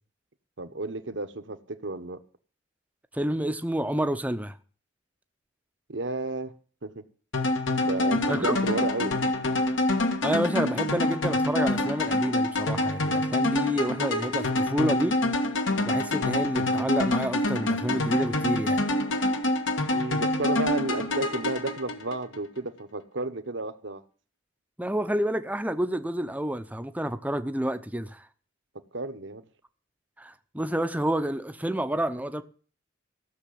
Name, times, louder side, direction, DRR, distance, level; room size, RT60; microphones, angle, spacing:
voice 1, 0.6-2.2 5.9-6.5 6.8-7.0 7.8-9.2 19.9-24.0 28.9-29.4, right 2 dB, 65° right, 1.2 m, -32 dB
voice 2, 3.1-4.6 8.3-8.6 10.2-15.2 15.8-18.8 24.8-28.3 30.2-32.4, right 1 dB, 10° right, 0.8 m, -29 dB
sound 1, 7.3-22.4, left 1 dB, 75° left, 1.8 m, -26 dB
15.5 x 6.8 x 8.6 m
head